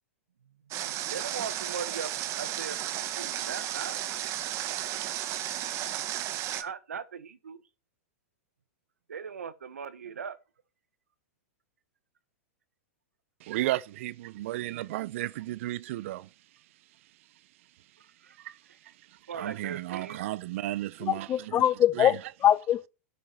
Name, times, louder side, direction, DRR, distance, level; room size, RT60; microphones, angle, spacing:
Water, 0.7-6.6, right 12 dB, 40° right, 1.4 m, -34 dB
voice 1, 0.7-2.1 2.4-4.0 6.6-7.6 9.1-10.4 18.0-18.4 19.3-20.3, right 6 dB, 90° right, 1.2 m, -39 dB
voice 2, 13.4-16.3 18.4-21.6 21.9-22.2, right 15 dB, 60° right, 0.6 m, -34 dB
voice 3, 21.1-22.9, left 11 dB, 30° left, 0.7 m, -23 dB
13.0 x 7.1 x 4.5 m
hypercardioid pair, 115°, 8 cm